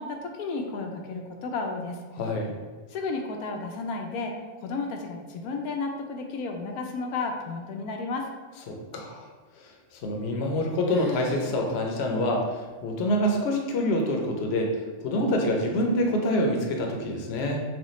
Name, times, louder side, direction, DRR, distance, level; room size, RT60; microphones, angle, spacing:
voice 1, 0.0-2.0 2.9-8.3, left 3 dB, 90° left, 3 dB, 1.1 m, -32 dB
voice 2, 2.2-2.6 8.7-9.2 10.0-14.8 15.0-17.6, left 1 dB, 55° left, 1 dB, 0.8 m, -26 dB
sound 1, 10.1-10.6 10.8-11.6 11.9-12.0 12.7-12.8 13.5-13.9, right 1 dB, 50° right, 1.9 m, -36 dB
6.3 x 2.3 x 3.1 m, 1.3 s
omnidirectional pair, 1.5 m